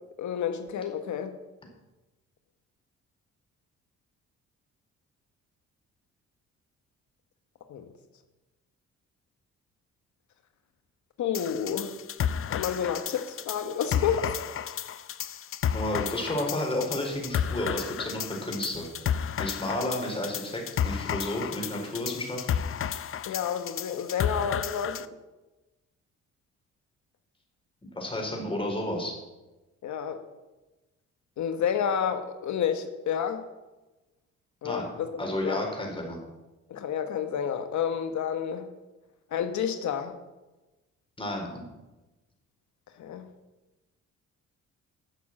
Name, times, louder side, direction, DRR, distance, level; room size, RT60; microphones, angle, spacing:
voice 1, 0.2-1.4 7.7-7.9 11.2-12.0 12.5-14.3 23.2-25.1 29.8-30.2 31.4-33.4 34.6-35.7 36.7-38.7 39.3-40.2 43.0-43.3, left 8 dB, 70° left, 8 dB, 1.3 m, -30 dB
sound 1, 11.3-25.1, left 8 dB, 45° left, 0.6 m, -32 dB
voice 2, 15.7-22.5 27.9-29.1 34.6-34.9 35.2-36.2 41.2-41.7, left 1 dB, 20° left, 0 dB, 4.5 m, -32 dB
12.0 x 7.2 x 7.6 m, 1.1 s
cardioid pair, 90°, 30 cm